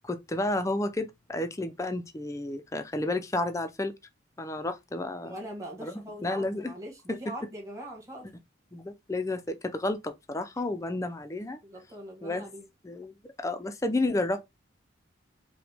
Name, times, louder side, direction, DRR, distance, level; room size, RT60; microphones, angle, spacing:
voice 1, 0.0-3.9 4.4-5.4 5.8-6.7 7.1-7.2 8.7-11.6 12.2-12.4 12.8-14.5, left 2 dB, 15° left, 0.4 m, -31 dB
voice 2, 5.2-8.3 10.6-10.7 11.6-12.7, right 1 dB, 15° right, 1.3 m, -42 dB
4.9 x 2.1 x 3.2 m
head